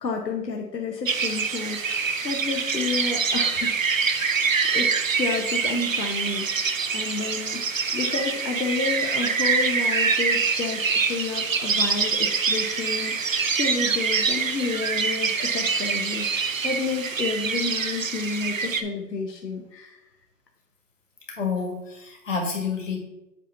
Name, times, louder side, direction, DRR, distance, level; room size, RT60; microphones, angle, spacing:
voice 1, 0.0-3.7 4.1-20.0, left 4 dB, 85° left, 1 dB, 1.1 m, -31 dB
sound 1, 1.1-18.8, right 5 dB, 55° right, 0.5 m, -25 dB
voice 2, 21.3-23.0, left 5 dB, 50° left, 0 dB, 1.8 m, -29 dB
8.0 x 2.9 x 5.9 m, 0.91 s
hypercardioid pair, 175°, 48 cm